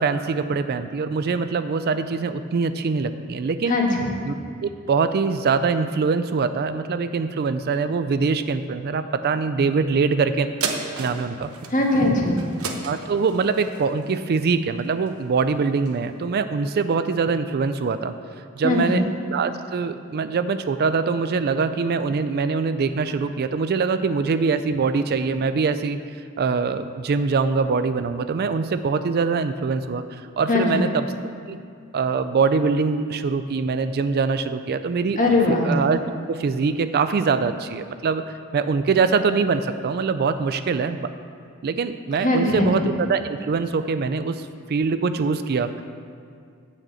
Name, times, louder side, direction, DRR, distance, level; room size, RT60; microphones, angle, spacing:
voice 1, 0.0-3.8 4.2-4.4 4.6-10.5 11.0-11.5 12.8-18.1 18.6-19.0 19.3-31.1 31.5-31.6 31.9-35.2 35.5-36.0 36.3-41.1 41.6-45.8, right 4 dB, 45° right, 11 dB, 0.4 m, -23 dB
voice 2, 3.7-4.1 11.7-12.4 18.6-19.0 30.5-30.8 35.2-35.7 42.2-42.7, left 2 dB, 35° left, -1 dB, 1.7 m, -20 dB
sound 1, 10.6-15.4 15.9-16.0, right 4 dB, 80° right, 1.0 m, -33 dB
8.9 x 6.5 x 7.9 m, 2.3 s
head